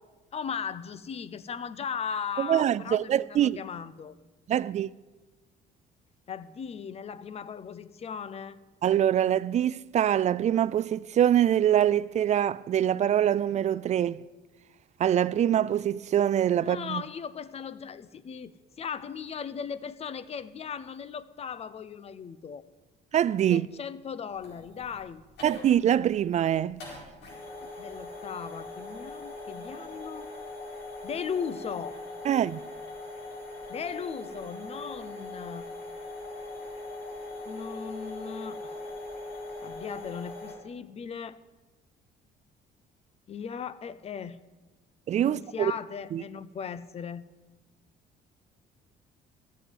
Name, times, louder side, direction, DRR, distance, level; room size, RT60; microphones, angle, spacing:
voice 1, 0.3-4.2 6.3-8.6 16.6-22.6 23.5-25.2 27.6-30.3 31.0-32.0 33.7-35.7 37.4-38.8 39.6-41.4 43.3-44.4 45.2-47.2, left 7 dB, 40° left, 0.7 m, -37 dB
voice 2, 2.4-3.6 4.5-4.9 8.8-14.2 15.0-17.0 23.1-23.7 25.4-26.8 32.2-32.6 45.1-45.7 46.1-46.2, right 10 dB, 45° right, 0.4 m, -24 dB
sound 1, 24.3-40.5, left 2 dB, 80° left, 4.6 m, -41 dB
14.0 x 7.8 x 9.0 m
cardioid pair, 110°, 17 cm